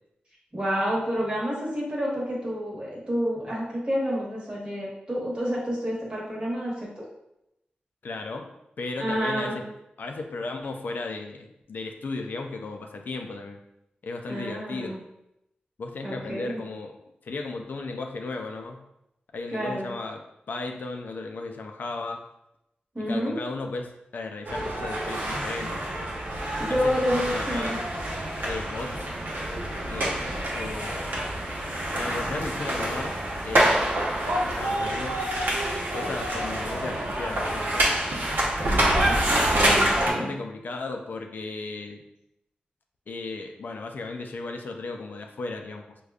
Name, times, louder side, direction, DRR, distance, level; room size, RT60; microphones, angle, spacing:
voice 1, 0.5-7.0 9.0-9.6 14.3-15.0 16.0-16.6 19.5-19.9 22.9-23.4 26.6-27.8 38.6-40.3, equal, 30° right, -5 dB, 1.2 m, -29 dB
voice 2, 8.0-8.5 8.8-9.7 10.0-13.6 14.0-15.0 15.8-17.0 17.2-18.8 19.3-22.2 23.0-25.8 26.7-27.9 28.4-29.1 29.9-30.3 30.5-31.2 31.9-33.2 33.4-33.9 34.4-35.2 35.9-37.9 40.0-42.0 43.1-46.0, left 3 dB, 70° left, 4 dB, 0.3 m, -35 dB
sound 1, 24.5-40.1, right 1 dB, 85° right, 0.7 m, -27 dB
4.8 x 2.2 x 2.3 m, 0.85 s
wide cardioid pair, 105°, 3 cm